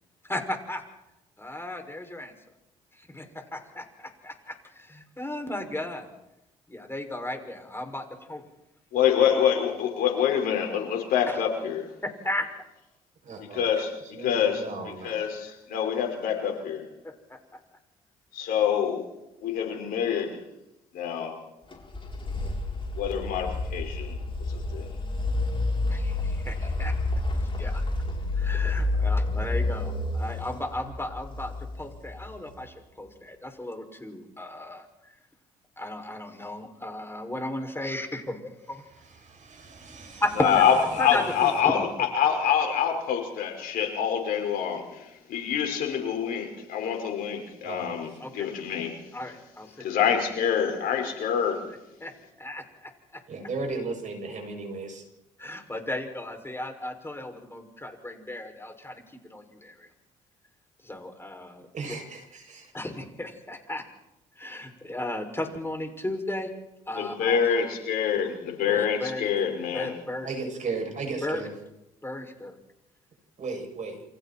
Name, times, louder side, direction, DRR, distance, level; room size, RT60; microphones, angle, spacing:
voice 1, 0.2-0.8 1.4-2.3 3.0-6.1 6.7-8.4 11.3-11.4 12.0-12.5 17.0-17.4 25.9-26.9 27.3-27.8 28.4-34.8 35.8-38.8 40.2-40.6 41.0-41.9 48.2-48.4 49.1-49.7 52.0-53.2 55.4-59.0 59.3-59.9 60.8-61.9 62.7-63.8 64.4-66.5 66.9-67.4 68.7-69.3 69.7-70.3 71.2-71.4 72.0-72.6, left 1 dB, 15° left, 4 dB, 6.6 m, -35 dB
voice 2, 8.9-11.9 13.5-16.9 18.3-19.0 19.4-20.4 20.9-21.3 22.9-24.1 24.5-24.9 40.4-49.0 49.8-51.6 66.9-69.9, left 8 dB, 70° left, 2 dB, 5.5 m, -26 dB
voice 3, 13.2-13.7 14.1-15.2 39.1-40.2 47.6-48.0 53.3-55.0 61.7-62.7 70.2-71.5 73.4-74.0, right 3 dB, 50° right, 3 dB, 7.8 m, -35 dB
sound 1, 21.7-32.5, left 2 dB, 35° left, 7.6 m, -29 dB
29.5 x 24.5 x 4.6 m, 0.91 s
hypercardioid pair, 50°, 16 cm